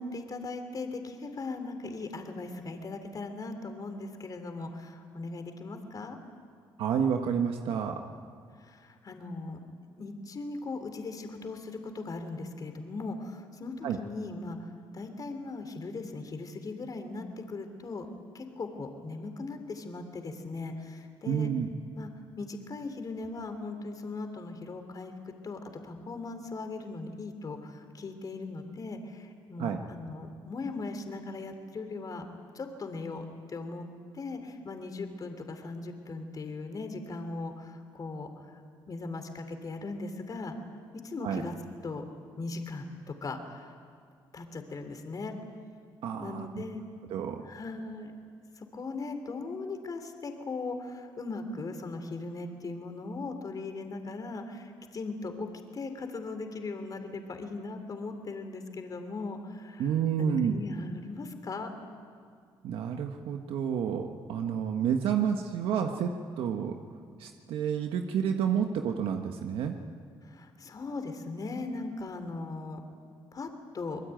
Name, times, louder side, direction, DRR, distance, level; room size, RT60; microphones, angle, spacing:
voice 1, 0.0-6.2 8.6-9.6 10.0-14.6 14.9-18.1 18.3-21.5 21.9-22.1 22.4-25.1 25.4-32.2 32.5-33.8 34.1-38.6 38.9-40.5 41.0-41.5 41.8-42.1 42.4-43.7 44.3-45.3 46.2-46.9 47.4-48.1 48.6-59.9 60.2-61.7 70.3-72.8 73.3-73.5 73.7-74.0, left 3 dB, 40° left, 7 dB, 3.1 m, -39 dB
voice 2, 6.8-8.0 13.8-14.0 21.3-21.7 29.6-29.8 41.2-41.4 46.0-46.6 47.1-47.4 59.8-60.6 62.6-66.1 66.4-66.7 67.2-69.8, right 8 dB, 80° right, 4 dB, 1.4 m, -29 dB
25.0 x 20.5 x 9.1 m, 2.2 s
cardioid pair, 90°, 9 cm